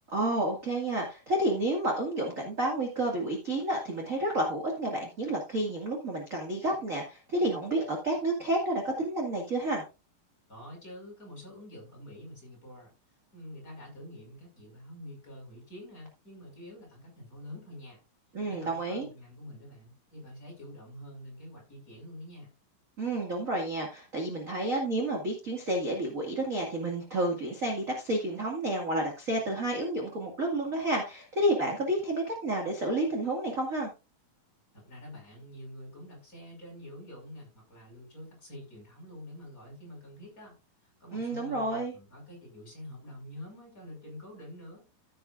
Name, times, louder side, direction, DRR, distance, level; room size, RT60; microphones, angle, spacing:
voice 1, 0.1-9.8 18.3-19.1 23.0-33.9 41.1-41.9, right 1 dB, 30° right, 0 dB, 1.8 m, -30 dB
voice 2, 10.5-12.9 13.3-18.0 18.4-22.5 34.7-44.9, left 1 dB, 20° left, -1 dB, 5.9 m, -47 dB
15.0 x 8.2 x 2.5 m, 0.29 s
omnidirectional pair, 4.1 m